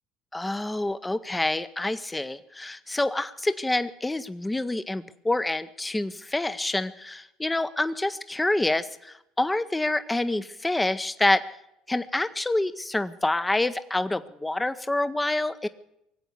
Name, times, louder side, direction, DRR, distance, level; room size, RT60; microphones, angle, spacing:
voice 1, 0.3-11.4 11.9-15.7, left 2 dB, 10° left, 13 dB, 0.7 m, -27 dB
19.0 x 8.1 x 8.2 m, 0.82 s
hypercardioid pair, 70°, 0 cm